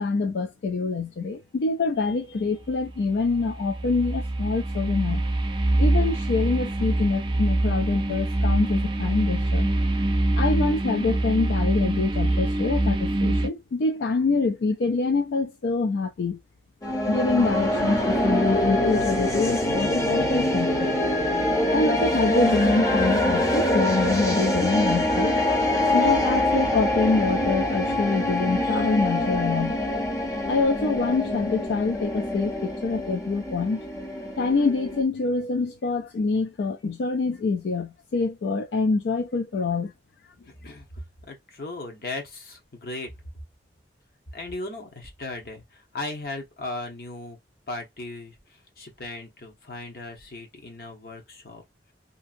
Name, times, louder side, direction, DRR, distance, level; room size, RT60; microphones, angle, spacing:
voice 1, 0.0-5.2 5.8-9.7 10.4-16.4 17.1-20.9 21.7-25.4 25.9-29.8 30.5-33.8 34.4-39.9, left 4 dB, 75° left, 0.3 m, -25 dB
sound 1, 2.8-13.5, right 2 dB, 25° right, 0.4 m, -24 dB
sound 2, 16.8-35.0, left 1 dB, 20° left, 0.7 m, -24 dB
voice 2, 40.5-43.1 44.3-47.4 47.7-51.6, left 2 dB, 55° left, 0.9 m, -37 dB
2.7 x 2.6 x 2.5 m
head